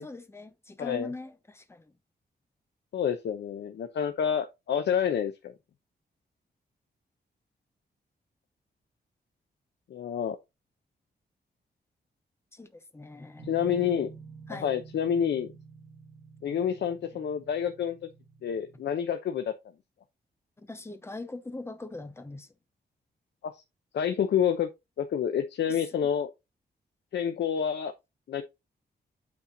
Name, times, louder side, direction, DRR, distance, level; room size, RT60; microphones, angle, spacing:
voice 1, 0.0-1.9 12.5-13.5 14.5-14.8 20.6-22.5 25.7-25.8, left 2 dB, 15° left, 1.0 m, -41 dB
voice 2, 0.8-1.1 2.9-5.5 9.9-10.4 13.4-14.1 14.5-15.5 16.4-18.0 18.4-19.5 23.4-23.6 23.9-24.7 25.0-26.3 27.1-27.9 28.3-28.4, left 8 dB, 80° left, 0.8 m, -28 dB
sound 1, 13.4-19.0, right 5 dB, 35° right, 1.9 m, -49 dB
8.8 x 4.3 x 4.0 m
wide cardioid pair, 150°, 18 cm